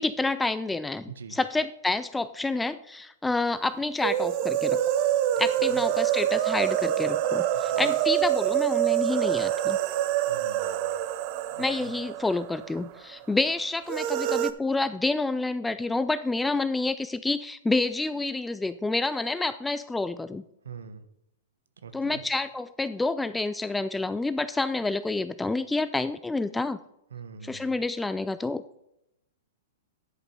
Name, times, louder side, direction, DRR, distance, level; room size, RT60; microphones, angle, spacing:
voice 1, 0.0-4.8 5.4-9.8 11.6-20.4 21.9-26.8 27.4-28.6, left 3 dB, 5° left, 13 dB, 0.3 m, -28 dB
sound 1, 4.0-12.9 13.1-13.2 13.9-14.5, right 12 dB, 45° right, 0.6 m, -26 dB
voice 2, 7.5-7.9 10.3-10.9 11.5-11.9 20.6-21.0 21.8-22.2 27.1-27.7, right 6 dB, 85° right, 11 dB, 1.1 m, -44 dB
10.0 x 5.2 x 5.6 m, 0.83 s
hypercardioid pair, 130°, 0 cm